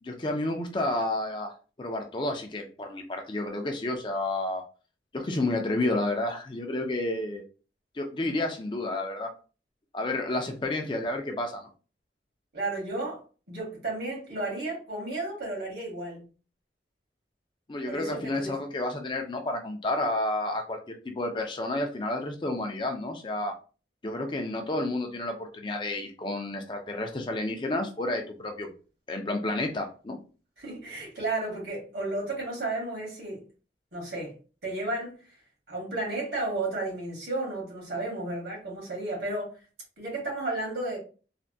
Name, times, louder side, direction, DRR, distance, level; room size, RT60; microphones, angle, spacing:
voice 1, 0.0-4.7 5.1-7.4 7.9-9.3 9.9-11.7 17.7-23.5 24.0-28.7 29.1-30.2, left 2 dB, 25° left, 0.4 m, -30 dB
voice 2, 12.5-13.2 13.5-16.2 17.9-18.5 30.6-33.4 33.9-34.3 34.6-35.2 35.7-39.5 40.0-41.0, right 2 dB, 70° right, 1.6 m, -33 dB
3.3 x 2.2 x 2.6 m
head